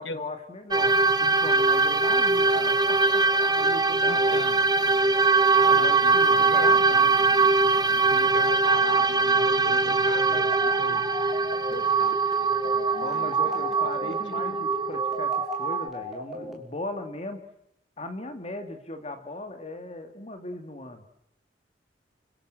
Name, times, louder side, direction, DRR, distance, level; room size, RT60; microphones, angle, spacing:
voice 1, 0.0-4.5 5.7-7.1 9.6-10.0 13.0-17.4 18.0-21.0, left 2 dB, 35° left, 7 dB, 2.4 m, -38 dB
sound 1, 0.7-15.9, right 4 dB, 20° right, 1.1 m, -22 dB
voice 2, 4.0-4.6 5.6-6.8 8.1-11.0 11.7-12.2 12.6-13.6 14.0-14.7, left 3 dB, 80° left, 12 dB, 1.8 m, -38 dB
sound 2, 10.1-16.5, left 2 dB, ahead, 5.5 m, -37 dB
30.0 x 24.0 x 7.8 m, 0.81 s
head